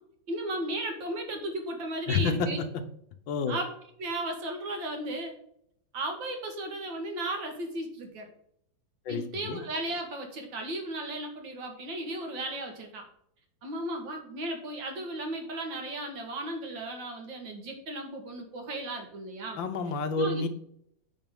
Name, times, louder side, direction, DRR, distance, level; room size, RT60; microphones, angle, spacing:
voice 1, 0.3-2.6 3.5-3.7 4.0-5.3 5.9-8.3 9.1-13.1 13.6-19.6 20.2-20.5, right 1 dB, 80° right, 3 dB, 2.6 m, -35 dB
voice 2, 2.1-2.8 3.3-3.6 9.0-9.6 19.6-20.5, left 4 dB, 80° left, 8 dB, 1.7 m, -29 dB
9.3 x 5.4 x 3.7 m, 0.68 s
omnidirectional pair, 2.1 m